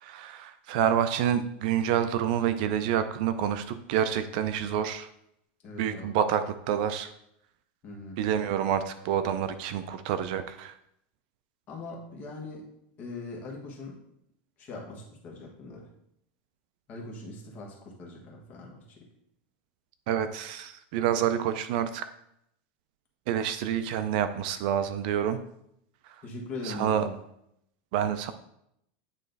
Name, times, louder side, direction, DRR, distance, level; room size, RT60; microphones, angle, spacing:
voice 1, 0.0-5.1 5.8-7.1 8.2-10.7 20.1-22.1 23.3-25.4 26.1-26.2 26.6-27.1 27.9-28.3, right 9 dB, 50° right, 10 dB, 0.4 m, -28 dB
voice 2, 5.6-6.2 7.8-8.2 11.7-12.7 13.0-14.0 14.6-15.9 16.9-19.1 26.2-27.1, left 2 dB, 30° left, -2 dB, 1.4 m, -41 dB
9.1 x 3.1 x 4.0 m, 0.76 s
supercardioid pair, 170°, 6 cm